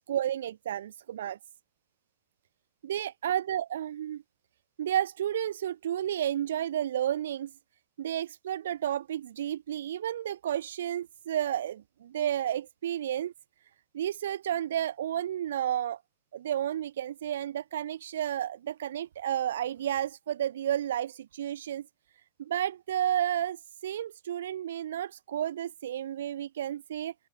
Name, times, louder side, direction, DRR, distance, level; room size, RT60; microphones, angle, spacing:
voice 1, 0.0-1.4 2.8-4.2 4.8-7.5 8.0-13.3 13.9-16.0 16.3-21.9 22.4-27.1, right 11 dB, 60° right, 0.4 m, -31 dB
open air
figure-of-eight pair, 90°, 0 cm